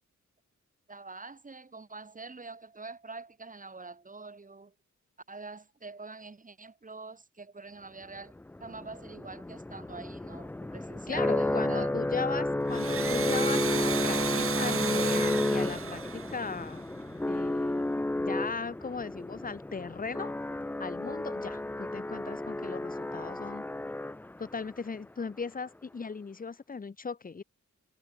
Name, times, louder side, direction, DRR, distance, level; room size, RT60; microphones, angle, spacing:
voice 1, 0.9-4.7 5.3-8.3 8.6-11.9 12.7-12.8, right 3 dB, 25° right, 3.2 m, -45 dB
sound 1, 8.4-24.6, left 1 dB, 5° left, 0.3 m, -32 dB
voice 2, 11.1-16.8 17.3-17.9 18.2-20.3 20.8-23.7 24.4-27.4, left 5 dB, 30° left, 1.0 m, -38 dB
Domestic sounds home sounds, 12.6-17.1, right 7 dB, 45° right, 1.0 m, -34 dB
wide cardioid pair, 140°, 31 cm